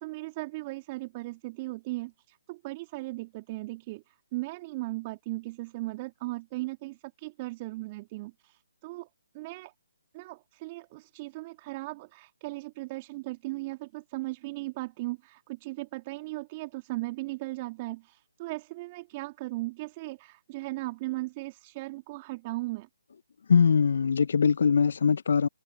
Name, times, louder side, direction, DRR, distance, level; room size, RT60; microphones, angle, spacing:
voice 1, 0.0-9.1 9.3-9.7 10.1-22.9, right 21 dB, 30° right, 2.9 m, -37 dB
voice 2, 23.5-25.5, left 6 dB, 55° left, 0.6 m, -22 dB
figure-of-eight pair, 140°, 0 cm